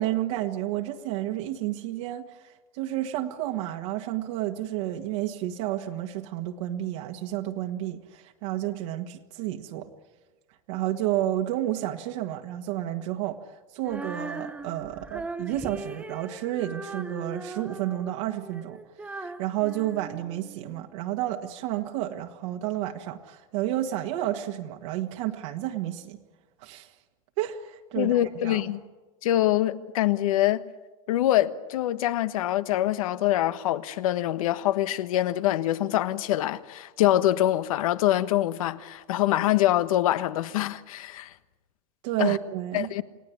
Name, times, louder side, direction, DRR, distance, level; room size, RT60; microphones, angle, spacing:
voice 1, 0.0-9.9 10.7-26.2 26.6-26.9 27.4-28.6 42.0-42.9, right 13 dB, 60° right, 1.7 m, -31 dB
Female singing, 13.8-20.9, right 2 dB, 5° right, 1.1 m, -39 dB
voice 2, 27.9-28.8 29.2-30.7 31.1-41.3 42.2-42.4 42.7-43.0, left 14 dB, 80° left, 1.3 m, -24 dB
29.5 x 18.0 x 9.7 m
supercardioid pair, 145°, 17 cm